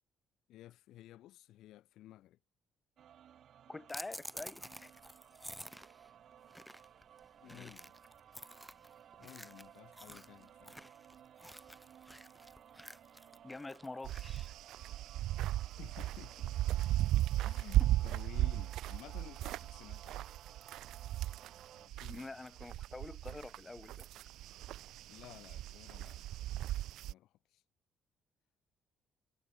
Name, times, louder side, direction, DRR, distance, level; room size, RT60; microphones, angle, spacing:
voice 1, 0.5-2.4 7.4-7.9 9.2-10.8 15.8-16.6 17.4-20.3 21.7-22.2 25.1-26.3 27.0-27.6, left 14 dB, 80° left, 3.5 m, -54 dB
sound 1, 3.0-21.9, right 9 dB, 60° right, 3.3 m, -59 dB
voice 2, 3.7-4.9 13.4-14.5 17.8-17.9 22.1-24.1, left 2 dB, 20° left, 5.4 m, -46 dB
sound 2, 3.9-14.5, equal, ahead, 5.8 m, -51 dB
sound 3, 14.0-22.2 22.6-27.1, right 14 dB, 80° right, 0.7 m, -36 dB
cardioid pair, 90°, 0 cm